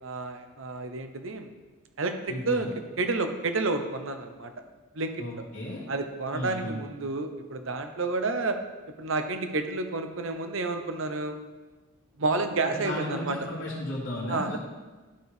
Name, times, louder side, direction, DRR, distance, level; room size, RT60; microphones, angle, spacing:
voice 1, 0.0-1.5 2.0-2.7 3.0-4.5 4.9-5.4 5.9-8.6 9.0-11.4 12.2-13.4 14.3-14.6, right 3 dB, 65° right, 7 dB, 0.8 m, -30 dB
voice 2, 2.3-2.7 5.2-5.8 6.3-6.8 12.6-14.6, left 1 dB, 55° left, -8 dB, 2.0 m, -34 dB
12.0 x 4.6 x 4.9 m, 1.3 s
head